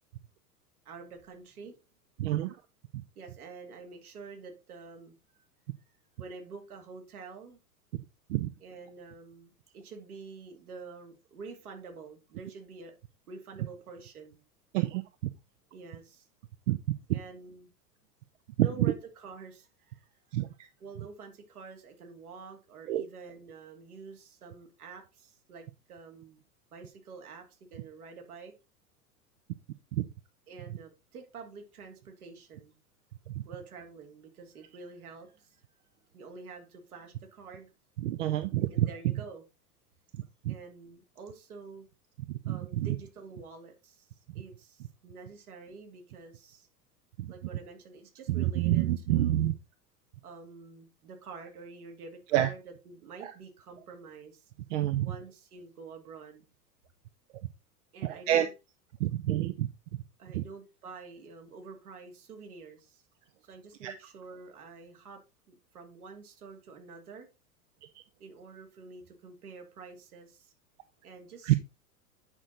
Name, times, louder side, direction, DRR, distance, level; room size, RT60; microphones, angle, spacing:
voice 1, 0.8-1.8 3.1-5.1 6.2-7.6 8.6-12.9 13.3-14.4 15.7-16.3 17.1-17.7 18.6-20.2 20.8-26.4 26.7-28.5 30.5-32.8 33.4-35.6 36.1-37.7 38.7-39.4 40.5-41.9 42.4-44.1 44.3-46.7 47.3-49.5 50.2-54.5 55.0-56.4 57.9-58.5 60.2-63.0 63.4-65.2 65.5-67.3 68.2-70.5 71.0-71.6, right 4 dB, 65° right, 4 dB, 2.8 m, -48 dB
voice 2, 2.2-2.6 7.9-8.0 8.3-8.5 14.7-15.0 16.7-16.8 18.6-18.7 20.3-20.5 22.9-23.0 29.9-30.0 33.3-33.4 38.0-38.9 40.4-40.5 42.3-42.9 47.2-47.3 48.3-49.5 52.3-52.5 53.2-53.3 54.7-55.1 58.0-58.5 59.0-59.7 60.3-60.4 63.8-63.9 67.8-67.9 71.4-71.6, right 13 dB, 50° right, 11 dB, 0.8 m, -28 dB
8.9 x 6.2 x 4.0 m, 0.27 s
figure-of-eight pair, 90°, 48 cm